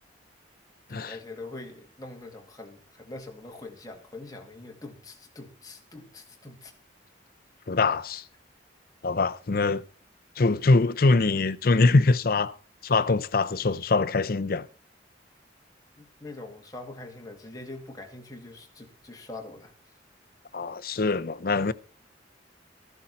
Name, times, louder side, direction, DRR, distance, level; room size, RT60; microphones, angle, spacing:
voice 1, 0.9-6.7 16.0-19.7, left 2 dB, 20° left, 2.1 m, -43 dB
voice 2, 7.7-8.2 9.0-9.8 10.4-12.5 12.8-14.7 20.5-21.7, left 3 dB, 50° left, 0.6 m, -23 dB
14.0 x 12.0 x 4.2 m
head